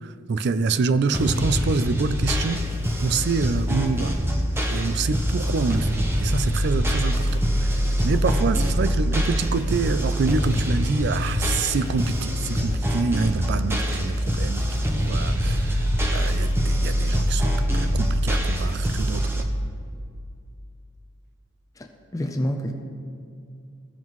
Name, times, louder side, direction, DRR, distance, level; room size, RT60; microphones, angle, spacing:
voice 1, 0.0-2.6 3.0-4.1 4.7-15.8 16.1-19.4, right 4 dB, 55° right, 13 dB, 0.4 m, -26 dB
sound 1, 1.1-19.4, equal, 10° right, 0.7 m, -24 dB
voice 2, 21.8-22.7, equal, 15° left, 4 dB, 0.5 m, -28 dB
15.5 x 5.5 x 3.1 m, 2.3 s
head